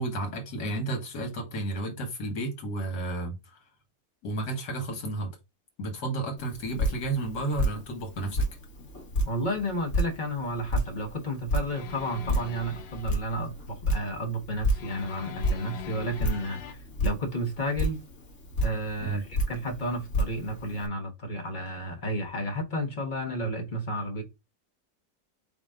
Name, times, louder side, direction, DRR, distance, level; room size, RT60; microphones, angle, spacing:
voice 1, 0.0-3.4 4.2-5.3 5.8-8.5 19.0-19.2, right 2 dB, 65° left, 2.1 m, -32 dB
Drip, 6.4-20.9, equal, 50° left, 1.7 m, -32 dB
voice 2, 9.2-18.0 18.6-19.2 19.5-24.2, equal, 30° left, 1.2 m, -32 dB
sound 1, 11.7-13.3 14.7-16.7, left 8 dB, 85° left, 1.5 m, -43 dB
5.0 x 2.9 x 3.6 m
omnidirectional pair, 2.0 m